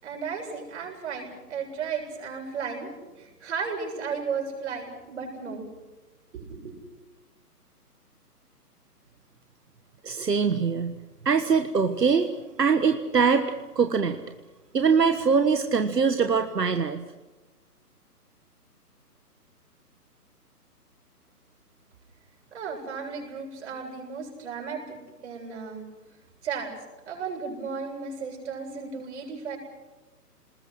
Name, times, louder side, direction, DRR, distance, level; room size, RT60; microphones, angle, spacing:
voice 1, 0.0-5.7 6.3-6.8 22.5-25.8 26.4-26.7 27.1-29.6, right 5 dB, 45° right, 1 dB, 7.8 m, -34 dB
voice 2, 10.0-11.0 11.2-12.3 12.6-14.2 14.7-17.0, right 5 dB, 80° right, 7 dB, 1.5 m, -23 dB
29.5 x 21.0 x 6.3 m, 1.1 s
figure-of-eight pair, 145°, 48 cm